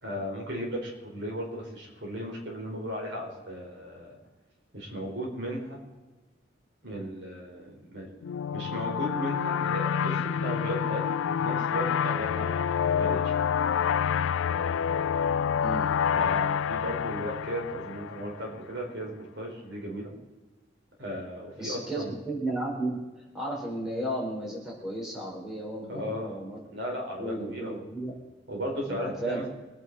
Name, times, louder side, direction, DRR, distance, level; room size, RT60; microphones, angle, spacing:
voice 1, 0.0-4.1 4.7-5.8 6.8-8.1 8.5-13.5 16.1-20.1 21.0-22.1 25.9-26.4 26.7-27.9 28.5-29.5, equal, 65° right, -1 dB, 4.4 m, -36 dB
sound 1, 8.2-18.6, left 7 dB, 85° left, 0.3 m, -28 dB
voice 2, 15.6-15.9 21.6-26.6 27.2-28.1 28.8-29.4, right 1 dB, 5° right, -4 dB, 4.0 m, -34 dB
24.5 x 9.5 x 4.1 m, 1.2 s
head